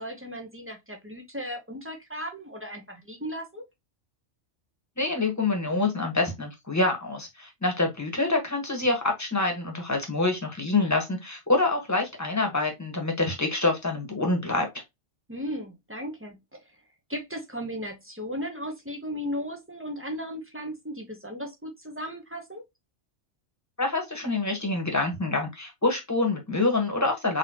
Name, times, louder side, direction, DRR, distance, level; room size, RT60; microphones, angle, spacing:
voice 1, 0.0-3.6 15.3-16.8 17.1-22.6, equal, 10° right, 0.8 m, -36 dB
voice 2, 5.0-14.7 23.8-27.4, left 2 dB, 15° left, 1.3 m, -26 dB
4.1 x 3.6 x 2.8 m
omnidirectional pair, 1.3 m